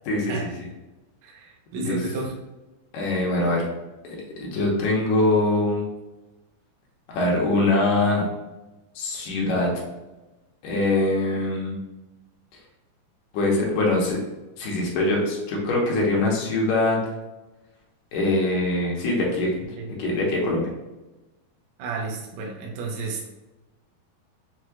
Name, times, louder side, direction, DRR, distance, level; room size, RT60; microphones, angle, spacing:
voice 1, 0.1-0.7 1.8-2.0 2.9-3.6 4.4-5.8 7.1-8.3 9.0-9.7 10.6-11.7 13.3-14.2 14.6-17.0 18.1-19.5 20.0-20.7, left 2 dB, 70° left, -3 dB, 2.3 m, -23 dB
voice 2, 1.2-2.3 19.8-20.0 21.8-23.3, right 3 dB, 85° right, -1 dB, 1.5 m, -32 dB
6.7 x 3.0 x 2.2 m, 1.1 s
omnidirectional pair, 4.4 m